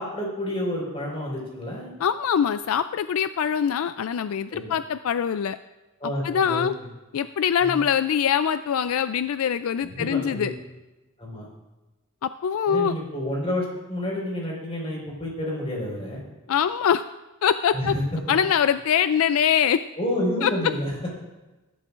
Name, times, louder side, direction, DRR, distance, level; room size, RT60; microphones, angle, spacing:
voice 1, 0.0-1.9 4.5-4.7 6.0-6.7 7.6-7.8 9.8-10.5 11.2-11.5 12.7-16.2 17.7-18.0 20.0-21.2, left 1 dB, 25° left, -2 dB, 4.6 m, -29 dB
voice 2, 2.0-5.6 6.2-6.7 7.1-10.5 12.2-12.9 16.5-17.0 17.4-17.9 18.3-19.8 20.4-20.5, left 8 dB, 70° left, 12 dB, 0.3 m, -23 dB
20.5 x 11.5 x 2.5 m, 1.1 s
head